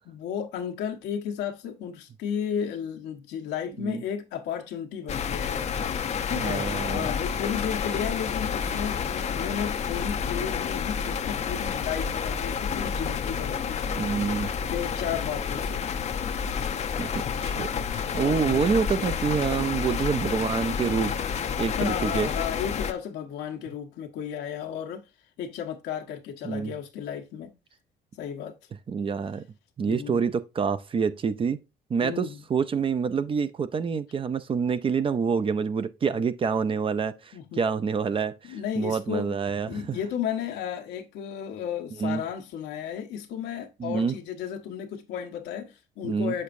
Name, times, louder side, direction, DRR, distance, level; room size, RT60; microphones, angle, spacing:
voice 1, 0.1-5.7 6.3-14.1 14.7-15.9 18.1-18.6 21.8-25.0 25.4-27.5 28.2-28.5 29.9-30.2 32.0-32.4 37.3-37.6 38.4-39.4 39.7-46.4, left 8 dB, 85° left, 1.2 m, -33 dB
sound 1, 5.1-22.9, left 7 dB, 40° left, 0.7 m, -29 dB
voice 2, 6.4-7.1 14.0-14.5 17.0-21.1 21.6-22.3 26.4-26.7 28.9-29.4 29.8-31.6 31.9-40.0 42.0-42.2 43.8-44.2 46.0-46.3, right 6 dB, 30° right, 0.6 m, -27 dB
7.0 x 6.5 x 2.6 m
cardioid pair, 110°, 17 cm